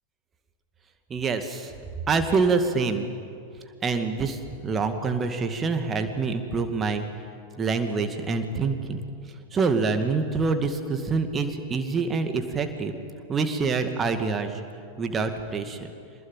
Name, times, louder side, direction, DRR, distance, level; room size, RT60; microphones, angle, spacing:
voice 1, 1.1-1.7 2.1-3.1 3.8-7.0 7.6-9.0 9.5-13.0 13.3-14.6 15.0-15.8, right 4 dB, 20° right, 7 dB, 2.2 m, -26 dB
25.0 x 20.0 x 9.3 m, 2.5 s
figure-of-eight pair, 90°, 0 cm